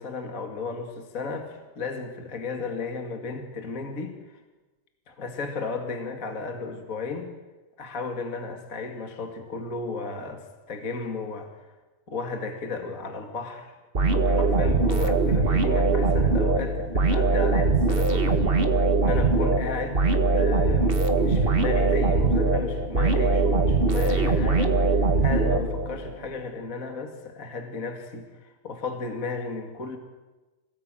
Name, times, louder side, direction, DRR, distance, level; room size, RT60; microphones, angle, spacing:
voice 1, 0.0-4.4 5.1-7.3 7.8-11.5 12.1-18.7 19.0-30.0, left 4 dB, 30° left, 4 dB, 2.1 m, -34 dB
sound 1, 13.9-26.1, right 3 dB, 35° right, 0.8 m, -22 dB
26.5 x 18.5 x 9.1 m, 1.2 s
omnidirectional pair, 3.9 m